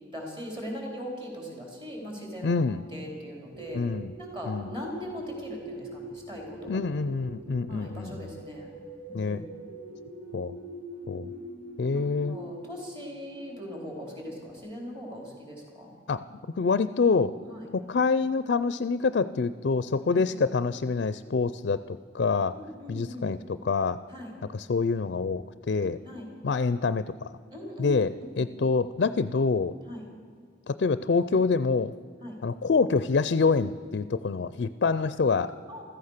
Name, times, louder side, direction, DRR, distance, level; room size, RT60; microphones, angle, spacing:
voice 1, 0.1-2.6 2.9-3.8 4.2-6.7 7.7-8.7 9.1-9.5 11.9-15.9 17.5-17.7 20.1-20.2 22.5-23.4 24.1-24.3 26.0-26.3 27.5-28.5 29.9-30.0 32.2-32.4 35.7-35.8, equal, 25° right, 0 dB, 4.0 m, -40 dB
voice 2, 2.4-2.8 3.7-4.1 4.5-4.7 6.7-8.3 9.1-9.4 10.3-10.6 11.1-11.3 11.8-12.4 16.1-16.2 16.6-17.3 17.7-22.5 22.9-24.0 24.5-26.0 26.4-27.3 27.8-29.7 30.7-31.9 32.4-35.5, left 4 dB, 55° left, 14 dB, 0.4 m, -26 dB
sound 1, 3.5-14.6, right 1 dB, 90° right, 2.3 m, -43 dB
15.0 x 14.0 x 6.6 m, 2.1 s
head